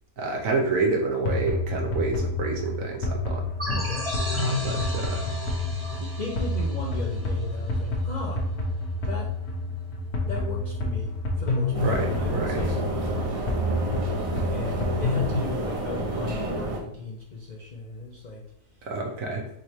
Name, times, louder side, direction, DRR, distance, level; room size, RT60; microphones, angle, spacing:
voice 1, 0.2-3.4 4.4-5.2 11.8-12.6 18.8-19.4, right 3 dB, 65° right, 1 dB, 1.2 m, -28 dB
sound 1, 1.2-15.5, left 2 dB, 80° left, 1.4 m, -29 dB
sound 2, 3.6-8.1, left 1 dB, 20° right, 1.2 m, -35 dB
voice 2, 3.7-4.2 6.0-8.5 9.0-9.3 10.3-13.5 14.5-18.4, left 3 dB, 55° left, -1 dB, 0.4 m, -37 dB
sound 3, 11.7-16.8, right 1 dB, 45° right, 0.4 m, -30 dB
3.6 x 3.2 x 4.2 m, 0.74 s
omnidirectional pair, 1.6 m